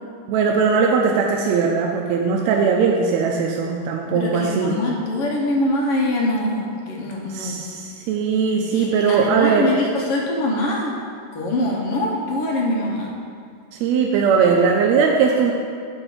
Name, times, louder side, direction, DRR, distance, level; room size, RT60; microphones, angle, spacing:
voice 1, 0.3-4.8 7.3-9.7 13.7-15.5, right 5 dB, 80° right, 0 dB, 1.7 m, -19 dB
voice 2, 4.1-7.5 8.7-11.0 11.3-13.1, left 1 dB, 65° left, -2 dB, 1.7 m, -23 dB
8.8 x 4.0 x 6.5 m, 2.2 s
omnidirectional pair, 3.4 m